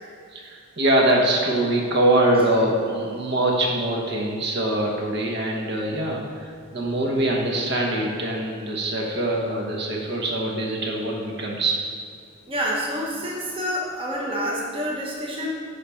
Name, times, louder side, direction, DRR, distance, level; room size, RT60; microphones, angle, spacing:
voice 1, 0.3-11.8, right 1 dB, 50° right, -1 dB, 1.0 m, -23 dB
voice 2, 12.5-15.6, equal, 25° right, -4 dB, 0.9 m, -28 dB
9.3 x 3.5 x 5.7 m, 2.2 s
head